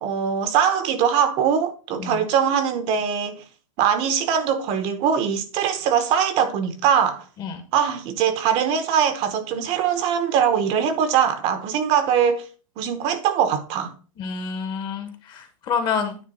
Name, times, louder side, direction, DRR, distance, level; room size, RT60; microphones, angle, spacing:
voice 1, 0.0-3.4 3.8-7.2 7.7-12.4 12.8-13.9, right 8 dB, 35° right, 1.0 m, -22 dB
voice 2, 14.2-16.2, left 6 dB, 25° left, 1.3 m, -28 dB
9.4 x 3.5 x 5.4 m
supercardioid pair, 150°, 17 cm